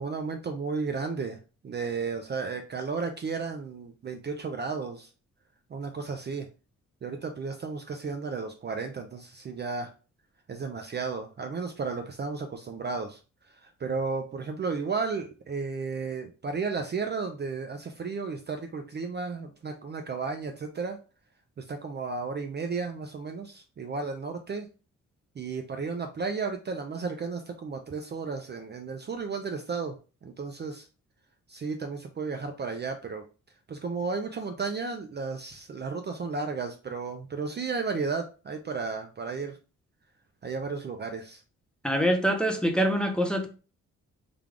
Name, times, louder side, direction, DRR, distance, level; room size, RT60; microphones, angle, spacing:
voice 1, 0.0-1.4 1.6-5.1 5.7-6.5 7.0-9.9 10.5-13.2 13.6-21.0 21.6-24.7 25.4-30.0 30.2-30.9 31.5-33.3 33.7-39.6 40.4-41.4, right 4 dB, 35° right, 0.4 m, -33 dB
voice 2, 41.8-43.5, equal, 5° left, 0.7 m, -25 dB
3.4 x 2.3 x 3.6 m
cardioid pair, 95°, 30 cm